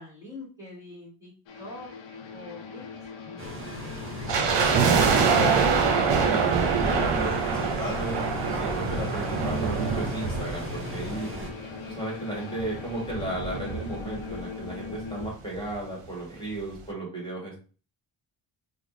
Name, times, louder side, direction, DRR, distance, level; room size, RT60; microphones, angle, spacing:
voice 1, 0.0-1.9 2.3-2.8, left 2 dB, 5° right, -7 dB, 1.1 m, -43 dB
sound 1, 1.5-15.3, left 5 dB, 75° left, 0.7 m, -41 dB
sound 2, 3.4-11.5, left 1 dB, 30° right, 0.6 m, -36 dB
sound 3, 4.3-11.6 11.8-11.9 12.6-14.4 14.7-14.8 15.0-15.3 15.7-15.8, right 5 dB, 65° right, 0.7 m, -25 dB
voice 2, 4.6-8.2 8.5-11.3 11.9-17.6, right 1 dB, 10° left, -3 dB, 1.3 m, -35 dB
3.4 x 2.0 x 3.7 m, 0.37 s
wide cardioid pair, 140°, 46 cm